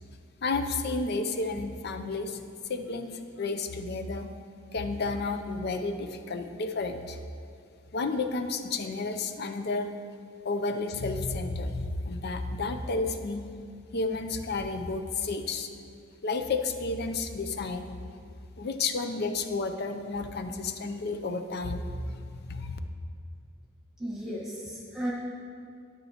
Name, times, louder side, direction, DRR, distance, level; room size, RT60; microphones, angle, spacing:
voice 1, 0.4-2.4 2.7-4.3 4.7-7.2 7.9-9.9 10.4-13.4 13.9-15.7 16.2-17.9 18.6-22.8, left 3 dB, 50° left, 8 dB, 0.5 m, -31 dB
voice 2, 24.0-25.1, equal, 5° right, -7 dB, 1.4 m, -34 dB
9.9 x 9.3 x 2.9 m, 2.3 s
head